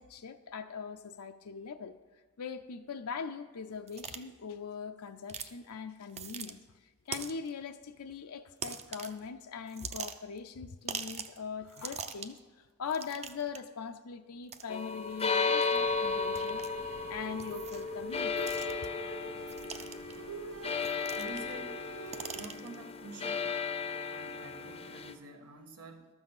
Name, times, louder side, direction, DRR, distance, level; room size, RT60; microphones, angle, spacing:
voice 1, 0.0-2.0 2.4-16.6 17.1-18.9, left 6 dB, 80° left, 0.6 m, -41 dB
sound 1, 3.9-4.2 5.3-5.5 6.1-6.5 7.1-7.5 8.6-9.2 9.7-10.4 10.9-11.4 11.7-12.4 12.9-13.6 14.5-14.6 15.6-15.8 16.4-16.7 17.4-17.9 18.4-18.9 19.5-20.2 20.8-21.5 21.8-22.7, right 6 dB, 30° right, 0.6 m, -42 dB
sound 2, 14.7-25.1, left 4 dB, 25° left, 0.6 m, -34 dB
sound 3, 15.7-22.5, right 5 dB, 70° right, 1.0 m, -47 dB
voice 2, 21.2-21.8 22.3-23.6 24.1-26.1, right 2 dB, 85° right, 1.5 m, -48 dB
12.5 x 6.2 x 7.2 m
head